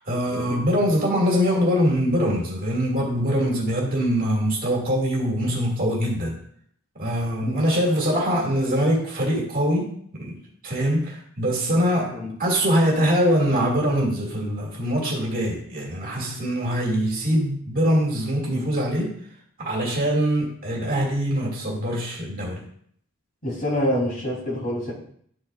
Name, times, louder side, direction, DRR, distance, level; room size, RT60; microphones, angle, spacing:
voice 1, 0.0-6.3 6.9-10.4 10.6-19.2 19.6-22.6, equal, 45° right, -2 dB, 2.6 m, -23 dB
voice 2, 23.4-24.9, equal, 45° left, -5 dB, 3.7 m, -27 dB
11.5 x 6.2 x 2.6 m, 0.64 s
head